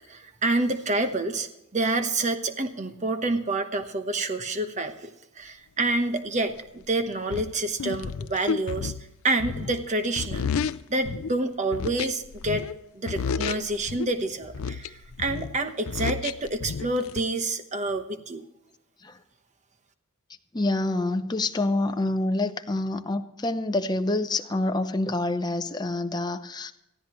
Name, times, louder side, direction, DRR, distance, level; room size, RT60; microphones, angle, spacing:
voice 1, 0.1-5.1 5.4-8.9 9.2-10.6 10.9-12.6 12.9-18.4, right 2 dB, 35° right, 8 dB, 1.0 m, -28 dB
sound 1, 6.6-6.7 7.3-11.4 11.7-12.8 13.1-14.1 14.5-17.2, left 6 dB, 70° left, 0.5 m, -32 dB
voice 2, 20.5-26.7, left 2 dB, 20° left, 8 dB, 0.7 m, -27 dB
19.0 x 14.0 x 3.0 m, 0.88 s
head